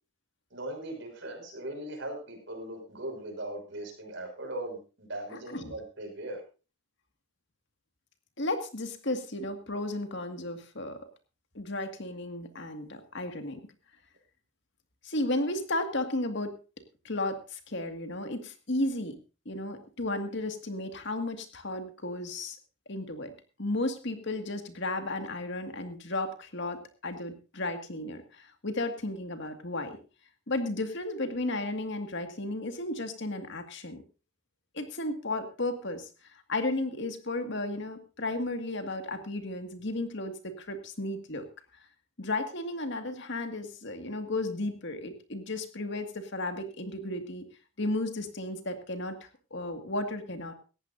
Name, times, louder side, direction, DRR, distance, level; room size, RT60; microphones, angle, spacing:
voice 1, 0.5-6.4, right 1 dB, 55° right, 3 dB, 6.0 m, -39 dB
voice 2, 5.3-5.7 8.4-11.1 11.5-13.6 15.0-16.6 17.0-19.2 19.5-22.6 22.9-23.3 23.6-30.0 30.5-34.0 34.7-41.5 42.2-47.5 47.8-50.5, left 2 dB, 55° left, 7 dB, 2.1 m, -34 dB
18.0 x 14.5 x 2.7 m, 0.33 s
head